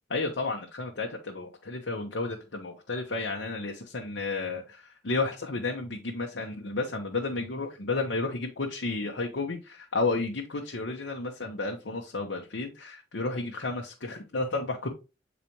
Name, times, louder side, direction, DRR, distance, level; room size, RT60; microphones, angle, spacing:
voice 1, 0.1-14.9, left 3 dB, 75° left, 1 dB, 0.9 m, -32 dB
8.5 x 4.1 x 3.0 m, 0.30 s
head